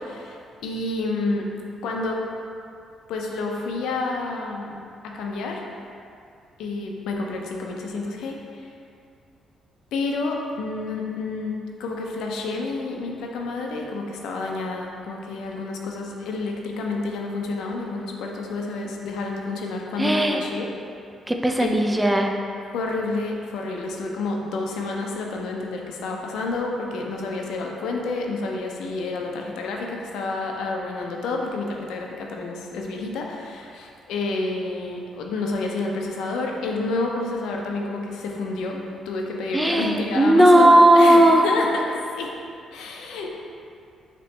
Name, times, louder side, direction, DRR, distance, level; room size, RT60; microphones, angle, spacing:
voice 1, 0.0-1.5 1.8-2.2 3.1-4.8 5.0-5.7 6.6-8.7 9.9-20.7 21.6-21.8 22.7-42.3 42.7-43.4, left 3 dB, 85° left, 0 dB, 0.5 m, -29 dB
voice 2, 20.0-20.4 21.3-22.4 39.5-41.4, right 1 dB, 10° right, 3 dB, 0.3 m, -16 dB
4.3 x 2.9 x 3.2 m, 2.5 s
cardioid pair, 90°, 0 cm